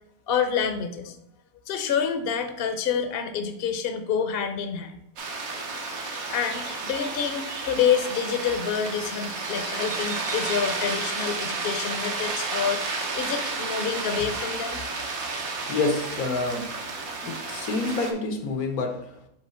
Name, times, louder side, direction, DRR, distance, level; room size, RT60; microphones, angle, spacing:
voice 1, 0.3-1.2 1.7-4.9 6.3-14.8, left 7 dB, 55° left, 7 dB, 0.7 m, -27 dB
sound 1, 5.2-18.1, right 3 dB, 75° right, 1.5 m, -32 dB
voice 2, 15.3-16.8 17.2-19.3, left 3 dB, 90° left, 5 dB, 1.5 m, -28 dB
7.9 x 3.3 x 4.3 m, 0.77 s
omnidirectional pair, 1.5 m